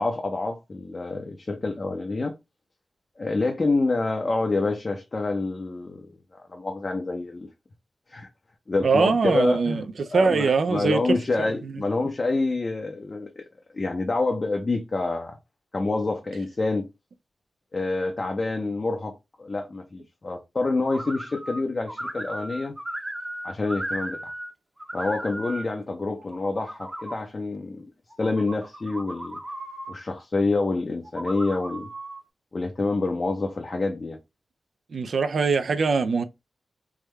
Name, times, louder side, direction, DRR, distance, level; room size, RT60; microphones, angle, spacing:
voice 1, 0.0-2.4 3.2-7.5 8.1-8.3 8.7-9.8 10.1-13.4 13.7-15.4 15.7-16.9 17.7-22.7 23.4-24.3 24.9-27.9 28.2-29.4 29.9-31.9 32.5-34.2, left 3 dB, 40° left, 0.6 m, -27 dB
voice 2, 8.8-11.7 34.9-36.2, right 4 dB, 70° right, 0.4 m, -23 dB
sound 1, 20.9-21.6 21.9-24.5 24.8-25.6 26.2-27.2 28.1-29.9 31.0-32.2, right 1 dB, 15° right, 0.7 m, -36 dB
3.5 x 2.2 x 3.1 m
wide cardioid pair, 90°, 0 cm